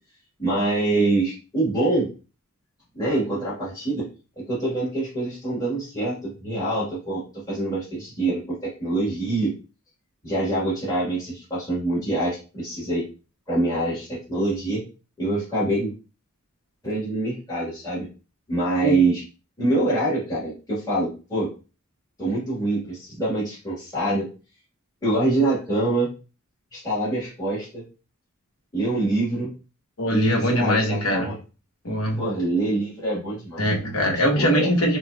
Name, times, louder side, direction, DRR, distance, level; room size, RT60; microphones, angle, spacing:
voice 1, 0.4-2.1 2.9-4.1 4.4-9.5 10.2-13.0 13.5-14.9 15.2-15.9 16.8-18.1 18.5-19.2 19.6-21.5 22.2-24.3 25.0-26.1 26.7-27.8 28.7-29.5 30.1-31.4 32.2-33.6 34.3-34.7, right 2 dB, 15° left, -9 dB, 1.5 m, -25 dB
voice 2, 30.0-31.3 31.8-32.2 33.6-35.0, equal, 75° left, 0 dB, 1.1 m, -22 dB
5.5 x 2.3 x 2.3 m, 0.34 s
head